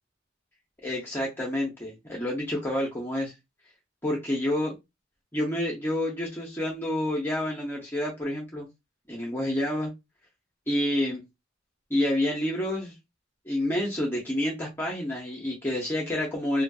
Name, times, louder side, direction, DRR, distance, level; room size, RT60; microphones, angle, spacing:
voice 1, 0.8-3.3 4.0-4.8 5.3-8.7 9.1-9.9 10.7-11.2 11.9-12.9 13.5-16.6, left 1 dB, 10° left, 0.6 m, -28 dB
2.6 x 2.4 x 2.3 m
head